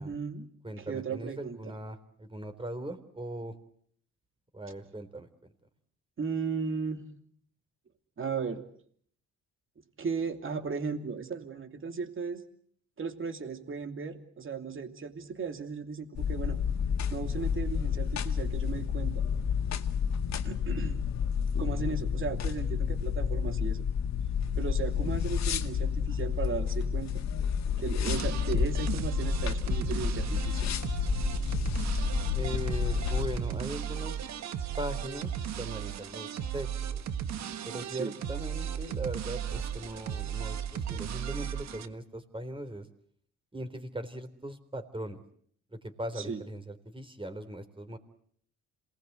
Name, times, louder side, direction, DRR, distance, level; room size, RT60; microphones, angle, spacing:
voice 1, 0.0-0.5 0.8-1.7 6.2-7.0 8.2-8.6 10.0-12.4 13.0-16.6 17.1-19.2 20.4-21.0 21.6-23.8 24.5-27.2 27.8-30.7 37.9-38.1 46.2-46.4, right 5 dB, 40° right, 7 dB, 3.0 m, -36 dB
voice 2, 0.6-3.5 4.5-5.5 21.6-22.0 32.3-34.2 34.8-37.0 37.6-42.9 43.5-45.2 45.7-48.0, right 1 dB, 15° right, 8 dB, 3.8 m, -39 dB
sound 1, 16.1-33.4, left 7 dB, 65° left, 1.8 m, -30 dB
sound 2, 28.1-41.9, right 9 dB, 65° right, 1.4 m, -35 dB
27.0 x 20.0 x 8.2 m, 0.62 s
cardioid pair, 90°, 30 cm